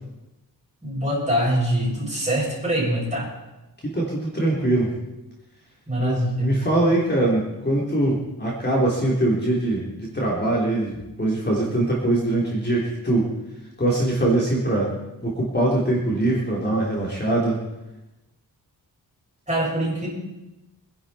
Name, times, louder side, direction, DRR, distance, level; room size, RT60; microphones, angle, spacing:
voice 1, 0.8-3.3 5.9-6.7 19.5-20.1, right 1 dB, 15° right, -5 dB, 7.3 m, -24 dB
voice 2, 3.8-4.9 6.0-13.3 13.8-14.9 15.2-17.6, right 1 dB, 25° left, -4 dB, 3.6 m, -22 dB
26.0 x 11.0 x 4.4 m, 0.99 s
wide cardioid pair, 135°, 40 cm